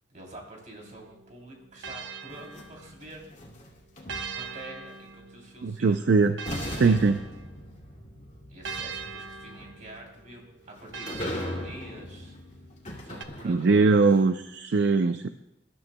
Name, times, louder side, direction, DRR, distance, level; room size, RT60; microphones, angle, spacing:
voice 1, 0.1-3.3 4.3-6.1 6.7-7.1 8.5-10.4 10.8-12.4 13.0-14.2, right 1 dB, 45° right, 0 dB, 3.2 m, -46 dB
sound 1, 0.8-3.3 4.1-7.9 8.6-12.4 13.2-13.3, right 5 dB, 90° right, 0.8 m, -42 dB
sound 2, 2.3-4.7 5.9-6.0 6.5-13.9, left 1 dB, 40° left, 2.3 m, -39 dB
voice 2, 5.6-6.4 6.7-7.2 13.4-15.3, right 4 dB, 65° right, 9 dB, 0.5 m, -21 dB
25.0 x 12.5 x 2.2 m, 0.87 s
head